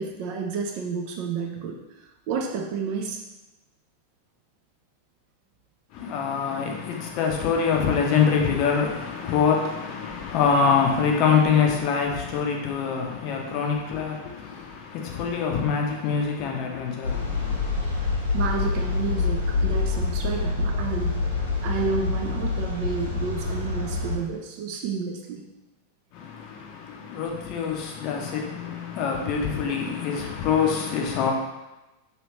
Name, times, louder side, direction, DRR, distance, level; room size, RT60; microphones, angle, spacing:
voice 1, 0.0-1.8 2.3-3.2 18.3-21.2 21.6-25.4, right 5 dB, 45° right, 0.5 m, -30 dB
voice 2, 5.9-17.7 26.1-31.3, left 6 dB, 40° left, 0.6 m, -25 dB
sound 1, 17.0-24.2, left 4 dB, 80° left, 0.8 m, -26 dB
3.1 x 3.0 x 2.9 m
figure-of-eight pair, 90°, 0 cm